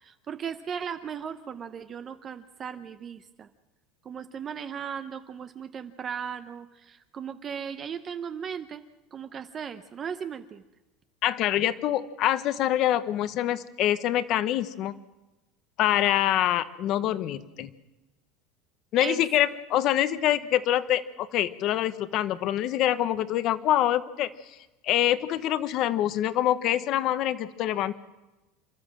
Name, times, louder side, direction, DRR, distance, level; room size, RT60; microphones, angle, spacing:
voice 1, 0.0-3.5 4.0-8.8 9.1-10.6 19.0-19.2, right 7 dB, 25° right, 9 dB, 0.7 m, -37 dB
voice 2, 11.2-14.9 15.8-17.7 18.9-24.3 24.8-27.9, left 12 dB, 40° left, 13 dB, 0.9 m, -25 dB
28.0 x 13.0 x 7.6 m, 1.1 s
cardioid pair, 165°, 0 cm